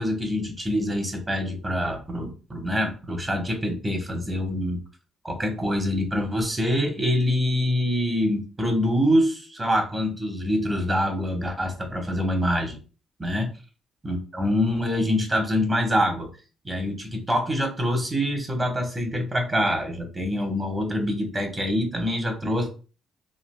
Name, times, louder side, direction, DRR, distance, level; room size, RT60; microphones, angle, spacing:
voice 1, 0.0-4.8 5.2-12.8 13.2-13.5 14.0-16.3 16.6-22.7, equal, 25° right, 2 dB, 1.1 m, -25 dB
3.8 x 2.7 x 2.2 m, 0.35 s
cardioid pair, 90°, 0 cm